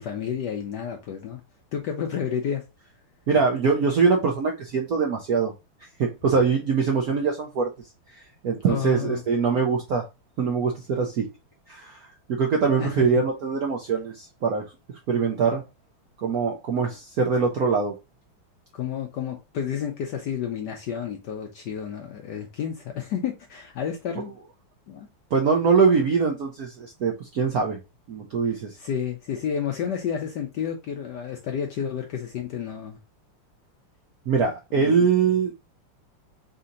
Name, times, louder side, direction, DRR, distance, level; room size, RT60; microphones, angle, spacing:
voice 1, 0.0-1.4 1.7-2.7 8.7-9.2 12.7-13.0 18.7-24.3 24.9-25.1 28.4-33.0 34.7-35.1, left 8 dB, 75° left, 1.0 m, -31 dB
voice 2, 3.3-5.5 6.0-7.7 8.4-10.1 10.4-11.3 11.7-14.6 15.1-15.6 16.2-17.9 25.3-27.8 28.1-28.8 34.3-35.5, right 5 dB, 70° right, 0.8 m, -23 dB
4.2 x 2.8 x 3.7 m
omnidirectional pair, 2.4 m